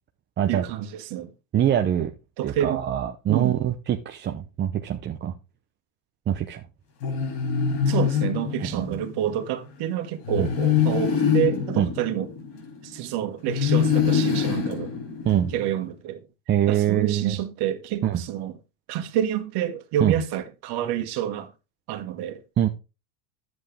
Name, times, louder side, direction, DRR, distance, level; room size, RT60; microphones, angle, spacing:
voice 1, 0.5-1.3 2.4-2.8 3.3-3.6 7.8-12.3 12.8-14.9 15.5-16.2 16.7-18.6 18.9-21.5 21.9-22.4, right 11 dB, 50° right, 1.7 m, -28 dB
voice 2, 1.5-2.1 2.4-5.3 6.3-6.6 8.6-9.0 10.4-10.5 11.8-11.9 15.2-15.5 16.5-17.3 18.0-18.2 20.0-20.2 22.6-22.7, right 11 dB, 20° right, 0.6 m, -24 dB
sound 1, 7.0-9.1 10.3-13.0 13.5-15.7, left 7 dB, 70° left, 4.6 m, -24 dB
10.5 x 7.9 x 3.2 m
supercardioid pair, 130°, 49 cm